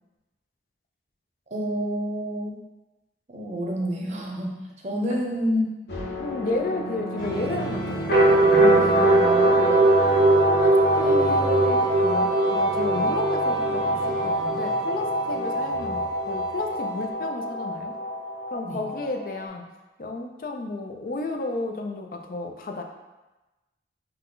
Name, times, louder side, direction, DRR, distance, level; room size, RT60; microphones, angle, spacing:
voice 1, 1.5-2.6 3.3-5.7 8.7-9.1 15.3-15.4 18.6-18.8, equal, 40° right, 0 dB, 0.6 m, -28 dB
sound 1, 5.9-19.4, right 1 dB, 80° left, 1.1 m, -22 dB
voice 2, 6.2-9.9 10.5-17.9 18.5-19.7 20.0-22.8, left 2 dB, 50° left, 4 dB, 0.4 m, -32 dB
Symphonic band tuning before the concert, 7.2-17.1, right 1 dB, 20° left, 1.2 m, -36 dB
5.6 x 2.2 x 3.8 m, 1.1 s
head